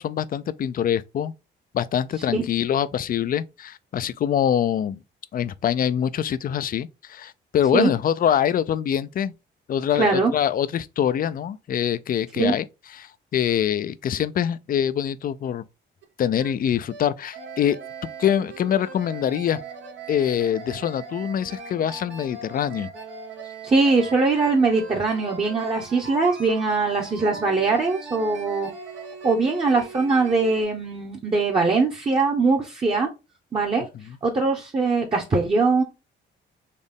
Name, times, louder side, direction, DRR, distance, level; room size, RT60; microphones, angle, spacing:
voice 1, 0.0-1.3 1.7-5.0 5.3-9.3 9.7-12.6 12.9-15.6 16.2-17.8 18.0-19.6 20.1-22.9, left 9 dB, 45° left, 0.4 m, -24 dB
voice 2, 10.0-10.3 12.4-12.6 23.6-28.7 29.2-33.1 33.5-33.9 34.2-35.8, right 3 dB, 25° right, 1.0 m, -21 dB
sound 1, 16.0-16.1 16.4-16.5 16.9-17.0 17.3-30.6, right 4 dB, 70° right, 1.2 m, -40 dB
4.2 x 3.1 x 3.5 m
cardioid pair, 90°, 20 cm